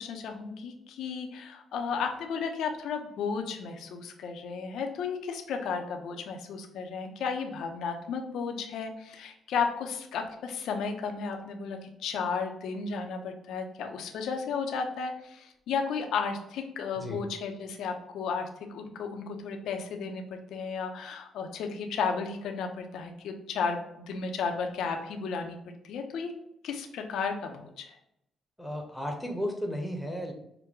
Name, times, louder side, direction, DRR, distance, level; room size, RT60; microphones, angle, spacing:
voice 1, 0.0-25.6 25.8-26.3 26.6-28.0, left 5 dB, 80° left, 4 dB, 0.7 m, -34 dB
voice 2, 28.6-30.3, equal, ahead, 2 dB, 1.0 m, -34 dB
5.7 x 2.2 x 3.7 m, 0.80 s
cardioid pair, 90°, 0 cm